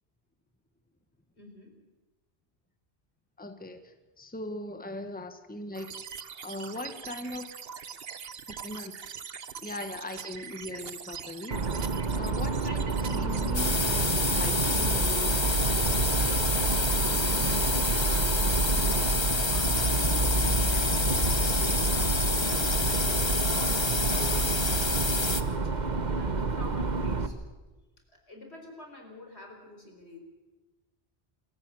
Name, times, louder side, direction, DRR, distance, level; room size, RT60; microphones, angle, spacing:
voice 1, 1.4-1.8 8.3-8.4 18.7-27.4 28.3-30.2, left 1 dB, 85° left, 3 dB, 4.7 m, -48 dB
voice 2, 3.4-5.9 6.4-7.5 8.5-8.9 9.6-11.7 12.1-15.4, left 1 dB, 10° left, 8 dB, 1.4 m, -40 dB
sound 1, 5.7-13.5, right 7 dB, 65° right, 1.2 m, -42 dB
sound 2, 11.5-27.3, right 3 dB, 45° right, 1.3 m, -28 dB
sound 3, 13.5-25.4, left 3 dB, 25° left, 1.1 m, -28 dB
26.5 x 15.5 x 7.7 m, 1.2 s
omnidirectional pair, 1.1 m